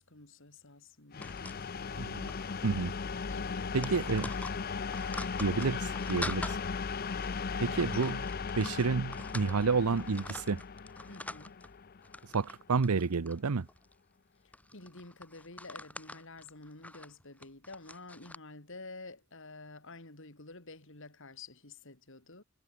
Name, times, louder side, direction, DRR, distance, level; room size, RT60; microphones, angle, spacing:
voice 1, 0.0-1.3 3.3-3.9 11.1-11.6 14.4-22.4, left 3 dB, 60° left, 3.3 m, -50 dB
sound 1, 1.1-12.8, left 5 dB, 40° left, 0.6 m, -37 dB
sound 2, 1.2-2.0 2.3-2.5 2.7-2.9 3.2-6.6 7.2-7.4 7.8-9.7 10.0-11.7 12.0-12.6 12.8-13.9 14.5-18.4, left 1 dB, 5° left, 1.7 m, -44 dB
voice 2, 2.0-2.3 2.6-2.9 3.7-4.3 5.4-6.6 7.6-8.3 8.6-10.6 12.3-13.7, right 4 dB, 85° right, 0.7 m, -30 dB
head